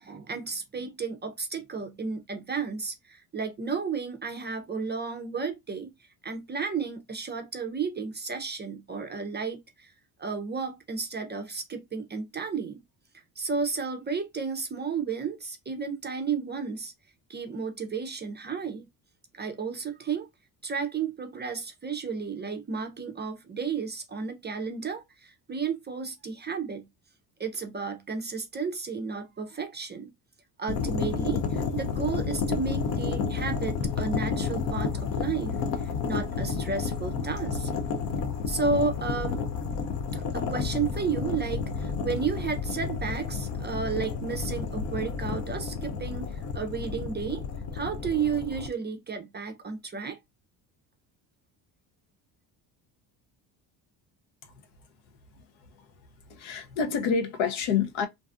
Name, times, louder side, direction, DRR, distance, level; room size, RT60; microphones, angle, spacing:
voice 1, 0.0-5.9 6.2-9.9 10.2-12.8 13.4-16.9 17.3-18.9 19.3-20.3 20.6-26.9 27.4-30.1 30.6-37.7 38.5-39.4 40.1-47.4 47.7-50.2, right 5 dB, 25° right, 0.4 m, -32 dB
sound 1, 30.7-48.7, left 5 dB, 45° left, 0.4 m, -31 dB
voice 2, 56.3-58.1, left 6 dB, 75° left, 0.8 m, -27 dB
2.6 x 2.3 x 2.3 m
supercardioid pair, 80°, 48 cm